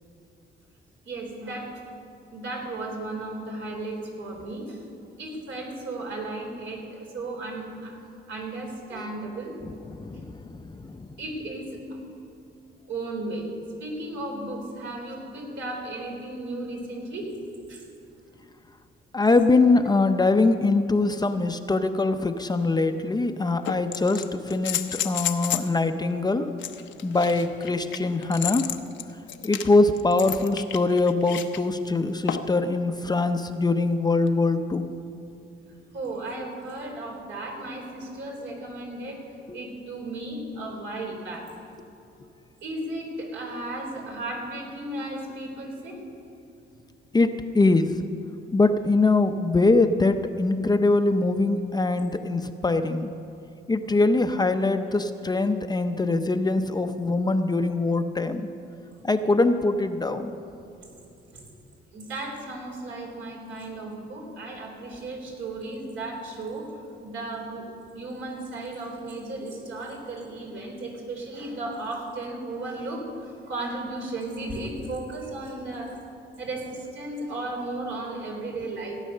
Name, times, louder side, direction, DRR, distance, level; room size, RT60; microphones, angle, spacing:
voice 1, 1.0-1.7 2.3-4.8 5.2-9.5 11.2-12.0 12.8-13.5 13.8-17.3 17.7-17.8 35.9-39.2 39.5-41.5 42.6-46.0 52.0-52.1 60.8-61.0 61.3-61.5 61.9-67.7 67.9-76.0 76.4-79.0, right 2 dB, 70° right, 0 dB, 3.8 m, -35 dB
voice 2, 10.0-11.1 19.1-26.6 27.0-28.8 29.4-34.9 39.5-39.6 47.1-47.9 48.5-53.1 53.7-58.5 59.0-60.3, left 3 dB, 20° left, 8 dB, 0.7 m, -23 dB
sound 1, 22.6-22.7 23.6-25.7 26.6-31.6 32.3-32.6 34.3-34.4, left 10 dB, 70° left, 0.8 m, -32 dB
16.5 x 9.0 x 6.6 m, 2.7 s
cardioid pair, 90°, 20 cm